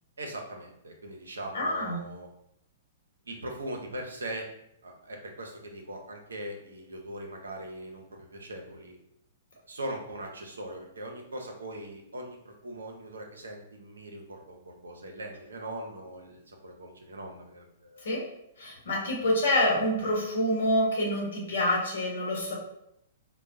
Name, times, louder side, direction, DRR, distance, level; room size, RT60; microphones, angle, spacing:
voice 1, 0.2-2.3 3.3-4.5 4.8-8.9 9.7-18.1, right 1 dB, 75° right, 1 dB, 0.5 m, -40 dB
voice 2, 1.5-2.0 18.0-18.2 18.6-22.5, left 1 dB, 65° left, -2 dB, 0.9 m, -27 dB
2.2 x 2.0 x 3.7 m, 0.79 s
figure-of-eight pair, 110°, 0 cm